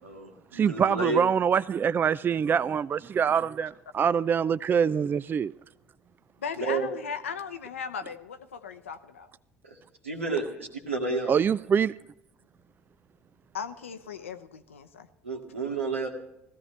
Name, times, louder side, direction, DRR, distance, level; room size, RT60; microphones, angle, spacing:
voice 1, 0.0-1.2 6.6-6.9 9.6-9.8 10.0-11.3 15.2-16.1, right 3 dB, 90° right, 2.1 m, -31 dB
voice 2, 0.5-5.5 11.3-11.9, right 7 dB, 30° right, 0.4 m, -24 dB
voice 3, 6.4-9.3 13.5-15.1, left 6 dB, 85° left, 0.8 m, -37 dB
18.0 x 15.0 x 3.3 m
figure-of-eight pair, 60°, 7 cm